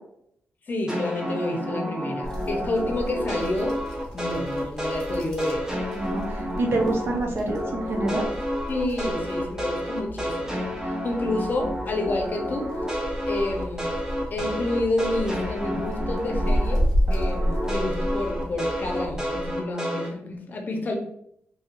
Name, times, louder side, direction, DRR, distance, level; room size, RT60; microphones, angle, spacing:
voice 1, 0.7-3.7 4.1-5.7 8.7-10.6 11.0-13.9 14.3-16.8 17.1-21.0, left 2 dB, 40° left, 2 dB, 0.6 m, -29 dB
sound 1, 0.9-7.2 7.5-16.8 17.1-20.1, equal, 15° right, 0.6 m, -30 dB
sound 2, 2.2-19.5, equal, 15° left, 1.0 m, -32 dB
voice 2, 5.9-8.2, right 2 dB, 60° right, 2 dB, 0.7 m, -27 dB
2.7 x 2.4 x 2.9 m, 0.72 s
cardioid pair, 100°, 5 cm